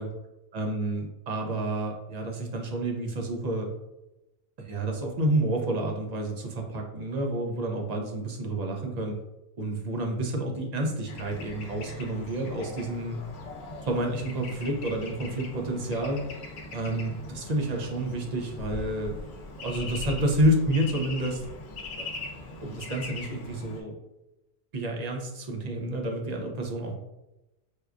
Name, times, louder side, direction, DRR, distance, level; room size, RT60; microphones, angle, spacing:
voice 1, 0.5-3.7 4.6-9.2 9.6-13.2 13.9-16.2 16.7-19.2 19.6-21.4 22.0-22.1 22.6-24.0 24.7-27.0, right 1 dB, 50° right, 1 dB, 0.6 m, -29 dB
Bird / Traffic noise roadway noise, 11.1-23.8, left 2 dB, 70° left, 0.8 m, -40 dB
4.4 x 2.3 x 2.4 m, 0.95 s
omnidirectional pair, 1.1 m